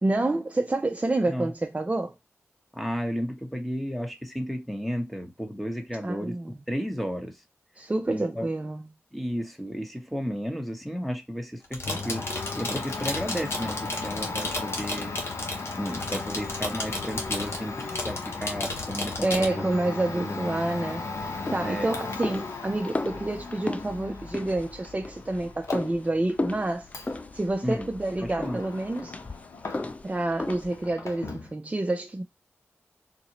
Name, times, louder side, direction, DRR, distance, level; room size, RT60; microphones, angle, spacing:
voice 1, 0.0-2.1 6.0-6.6 7.8-8.9 19.2-26.9 27.3-29.1 30.0-32.2, right 2 dB, 25° right, 0.6 m, -28 dB
voice 2, 2.7-6.4 6.7-7.4 8.1-8.5 9.1-12.3 12.5-15.2 15.8-20.4 21.6-22.0 27.6-27.9 28.2-28.6, equal, ahead, 1.3 m, -33 dB
sound 1, 11.6-19.5, left 2 dB, 55° left, 1.4 m, -33 dB
Domestic sounds home sounds, 11.8-30.2 30.4-31.5, left 4 dB, 80° left, 0.7 m, -37 dB
sound 2, 21.2-30.9, left 2 dB, 25° left, 0.4 m, -36 dB
4.0 x 2.6 x 3.0 m
cardioid pair, 50°, 5 cm